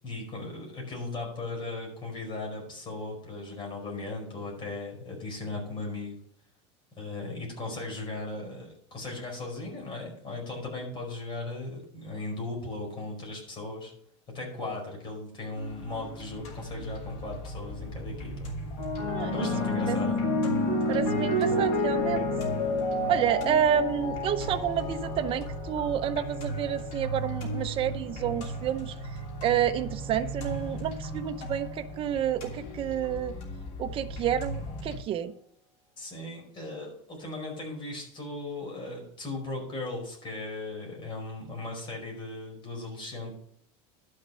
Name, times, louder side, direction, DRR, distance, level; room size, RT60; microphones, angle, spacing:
voice 1, 0.0-6.2 6.9-13.9 14.3-18.5 19.3-20.2 36.0-43.3, left 2 dB, 30° left, 0 dB, 5.0 m, -37 dB
sound 1, 15.5-35.0, right 1 dB, 45° left, 3.0 m, -38 dB
sound 2, 18.8-27.3 28.2-28.6, left 2 dB, 70° left, 4.6 m, -30 dB
voice 2, 19.1-19.5 19.9-20.0 20.9-22.3 23.1-28.9 29.4-33.3 33.8-35.3, right 9 dB, 35° right, 9 dB, 0.8 m, -29 dB
11.5 x 6.6 x 5.6 m, 0.68 s
supercardioid pair, 150°, 16 cm